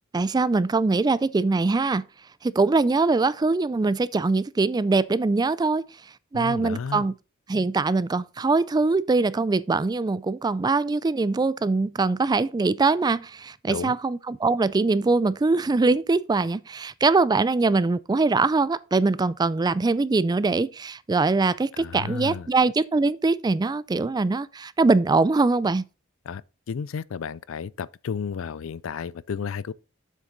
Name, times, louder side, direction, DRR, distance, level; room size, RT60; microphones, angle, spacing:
voice 1, 0.1-2.0 2.4-5.8 6.3-7.1 7.5-25.8, right 3 dB, 20° right, 0.3 m, -22 dB
voice 2, 6.3-7.1 13.7-13.9 21.7-22.5 26.3-26.4 26.7-29.7, left 6 dB, 70° left, 0.4 m, -32 dB
7.4 x 6.5 x 3.9 m
head